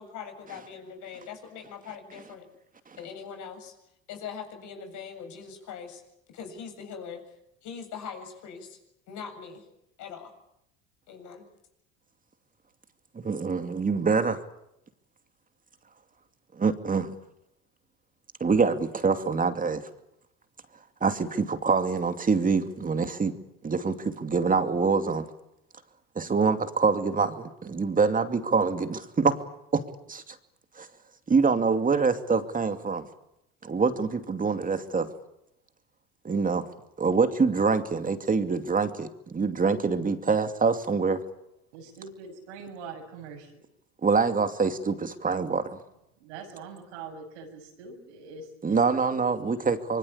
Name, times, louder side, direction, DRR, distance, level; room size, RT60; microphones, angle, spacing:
voice 1, 0.0-2.5 2.9-3.7 4.1-6.0 6.3-7.2 7.6-8.8 9.1-9.6 10.0-10.3 11.1-11.5, left 6 dB, 60° left, 5 dB, 7.8 m, -41 dB
voice 2, 13.2-14.4 16.6-17.1 18.4-19.8 21.0-21.1 21.6-23.3 23.6-25.3 26.2-29.3 29.7-29.8 30.1-30.2 30.8-30.9 31.3-33.0 33.6-35.1 36.2-36.6 37.0-41.2 44.0-45.7 48.6-50.0, right 4 dB, 25° right, 8 dB, 2.6 m, -25 dB
voice 3, 41.7-43.6 46.2-49.2, right 4 dB, 90° right, 3 dB, 7.1 m, -43 dB
25.5 x 23.5 x 8.6 m, 0.81 s
supercardioid pair, 90°, 33 cm